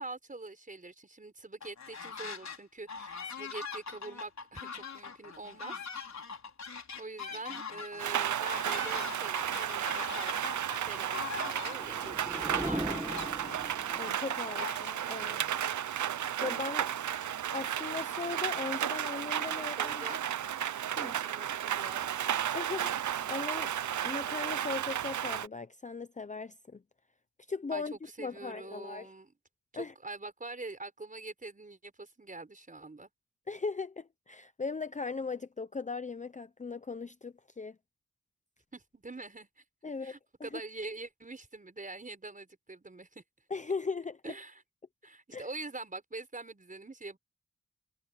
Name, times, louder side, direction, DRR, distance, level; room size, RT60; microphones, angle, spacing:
voice 1, 0.0-5.8 7.0-13.3 19.6-20.2 21.2-22.1 27.7-29.3 29.7-33.1 38.7-39.6 40.0-43.2 44.2-44.6 45.0-47.2, right 3 dB, 25° right, 5.3 m, -44 dB
sound 1, 1.6-2.6 2.9-15.2, left 5 dB, 65° left, 4.4 m, -42 dB
Rain, 8.0-25.5, right 10 dB, 80° right, 0.6 m, -33 dB
sound 2, 11.6-14.2, right 1 dB, 5° right, 1.5 m, -39 dB
voice 2, 13.9-15.4 16.4-16.9 17.5-20.2 21.0-21.2 22.5-23.7 24.0-26.8 27.5-27.9 28.2-29.1 29.7-29.9 33.5-37.8 39.8-40.6 43.5-44.3 45.3-45.5, left 4 dB, 25° left, 0.6 m, -38 dB
wide cardioid pair, 150°, 29 cm